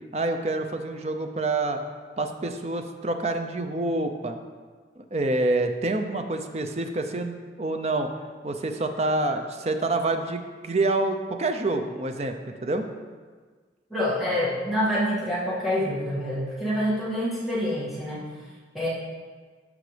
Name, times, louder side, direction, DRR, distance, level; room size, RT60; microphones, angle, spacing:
voice 1, 0.1-1.8 2.2-4.4 5.0-8.1 8.4-12.3 12.6-12.8, right 2 dB, 35° right, 6 dB, 0.6 m, -27 dB
voice 2, 13.9-18.2 18.7-18.9, equal, ahead, -11 dB, 2.1 m, -26 dB
13.0 x 5.0 x 3.3 m, 1.5 s
head